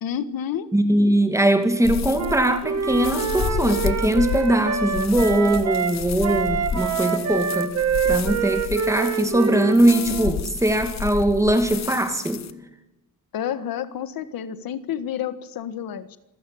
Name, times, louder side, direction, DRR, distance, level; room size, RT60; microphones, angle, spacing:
voice 1, 0.0-0.7 13.3-16.2, left 9 dB, 85° left, 12 dB, 1.6 m, -29 dB
voice 2, 0.7-7.7 8.0-12.5, right 1 dB, 10° right, 7 dB, 2.4 m, -21 dB
sound 1, 1.8-12.5, left 7 dB, 50° left, 1.3 m, -31 dB
Wind instrument woodwind instrument, 2.1-6.0 6.2-10.3, right 7 dB, 50° right, 1.9 m, -26 dB
26.0 x 15.5 x 8.6 m, 0.92 s
wide cardioid pair, 170°, 34 cm